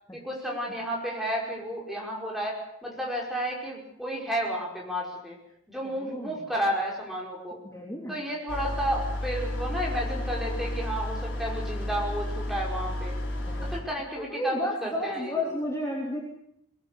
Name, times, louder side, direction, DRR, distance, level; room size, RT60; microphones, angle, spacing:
voice 1, 0.1-5.4 5.7-7.6 8.1-13.1 13.7-15.4, equal, ahead, -3 dB, 5.4 m, -32 dB
voice 2, 5.8-6.3 7.6-8.2 13.5-13.8 14.2-16.2, left 1 dB, 15° left, -2 dB, 3.3 m, -32 dB
sound 1, 8.5-13.8, left 1 dB, 55° left, 6.3 m, -32 dB
23.0 x 19.5 x 8.4 m, 0.77 s
head